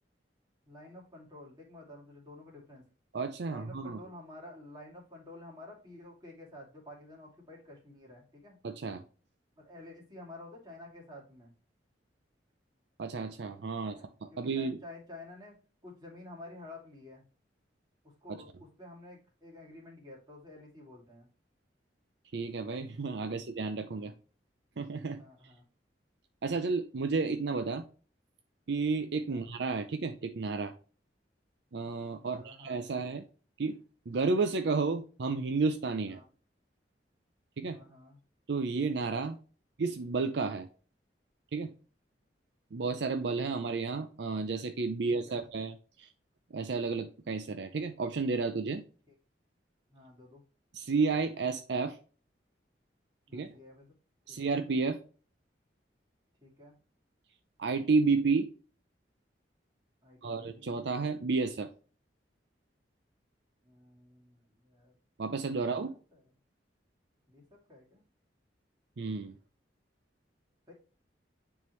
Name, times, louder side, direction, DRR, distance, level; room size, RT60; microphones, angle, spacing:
voice 1, 0.7-2.8 3.4-8.6 9.6-11.5 13.8-14.1 14.3-15.6 15.8-17.2 18.0-21.3 23.2-23.4 23.9-24.1 25.2-25.7 29.3-29.5 32.2-33.1 36.1-36.3 37.7-38.2 45.1-45.5 49.1-49.2 49.9-50.4 53.3-53.9 54.3-54.6 56.4-56.8 60.0-60.8 63.6-64.9 65.5-66.2 67.3-68.0 70.7-70.8, left 2 dB, 25° right, 2.4 m, -51 dB
voice 2, 3.1-4.0 8.6-9.0 13.0-14.8 18.3-18.4 22.3-24.1 24.8-25.2 26.4-27.9 28.7-30.7 31.7-33.2 33.6-33.8 34.1-36.2 37.6-37.8 38.5-39.4 39.8-40.7 41.5-41.7 42.7-46.1 46.5-48.8 50.7-52.0 53.3-53.5 54.3-55.0 57.6-58.5 60.2-61.7 65.2-65.9 69.0-69.3, right 4 dB, 70° right, 0.5 m, -31 dB
9.4 x 3.7 x 3.1 m
head